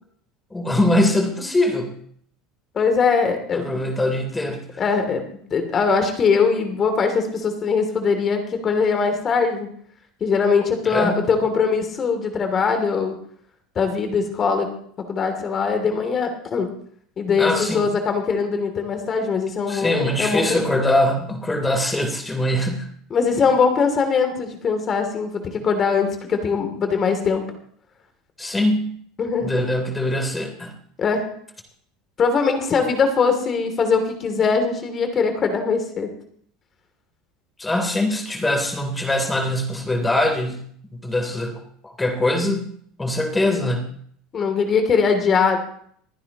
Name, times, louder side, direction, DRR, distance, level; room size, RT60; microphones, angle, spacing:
voice 1, 0.5-1.9 3.5-4.6 10.8-11.2 17.4-17.8 19.7-22.9 28.4-28.9 29.4-30.7 37.6-40.6 40.9-41.6 42.0-42.7 43.0-43.9, left 1 dB, 15° left, 5 dB, 3.4 m, -22 dB
voice 2, 2.7-3.8 4.8-5.2 5.5-9.7 10.2-13.2 13.7-14.7 15.1-16.7 17.2-20.6 23.1-27.4 29.2-29.5 31.0-31.2 32.2-36.1 44.3-45.6, left 5 dB, 35° left, 6 dB, 2.8 m, -21 dB
27.5 x 9.9 x 3.0 m, 0.62 s
hypercardioid pair, 80°, 0 cm